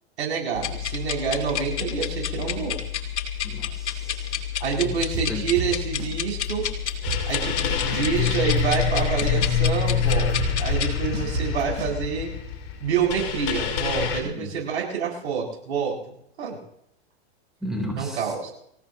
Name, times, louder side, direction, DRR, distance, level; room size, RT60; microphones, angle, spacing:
voice 1, 0.2-2.8 4.6-6.7 7.2-12.3 12.8-15.9 16.4-16.6 18.0-18.5, right 6 dB, 80° right, -1 dB, 7.8 m, -27 dB
sound 1, 0.5-10.9, left 9 dB, 85° left, 2.5 m, -30 dB
voice 2, 3.4-4.4 4.8-4.9 5.3-5.4 14.2-14.5 17.6-18.2, equal, ahead, 1 dB, 3.9 m, -33 dB
sound 2, 5.1-6.2 6.4-6.5 6.9-8.2 8.6-11.9, right 4 dB, 40° right, 4.1 m, -31 dB
sound 3, 7.0-14.2, left 7 dB, 55° left, 5.9 m, -26 dB
25.5 x 16.5 x 3.1 m, 0.72 s
hypercardioid pair, 110°, 33 cm